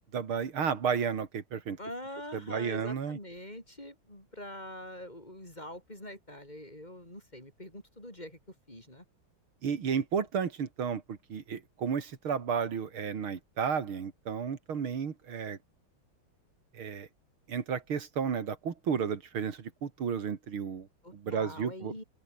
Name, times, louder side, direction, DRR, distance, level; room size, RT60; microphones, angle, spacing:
voice 1, 0.1-1.8 2.3-3.2 9.6-15.6 16.7-17.1 17.5-20.9 21.1-21.9, right 6 dB, 85° right, 3.1 m, -32 dB
voice 2, 1.8-8.4 8.7-9.0 21.0-22.0, left 1 dB, 20° left, 6.5 m, -44 dB
open air
omnidirectional pair, 2.2 m